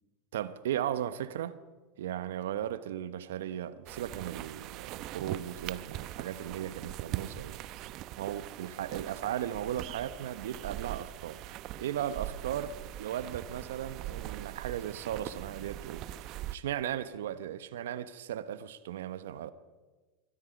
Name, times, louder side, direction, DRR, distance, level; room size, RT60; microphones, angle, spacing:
voice 1, 0.3-1.6 2.0-7.6 8.2-12.7 13.0-16.0 16.5-19.5, right 11 dB, 75° right, 1.1 m, -36 dB
sound 1, 3.9-16.6, right 14 dB, 55° right, 0.9 m, -41 dB
26.5 x 24.0 x 5.2 m
hypercardioid pair, 85°, 0 cm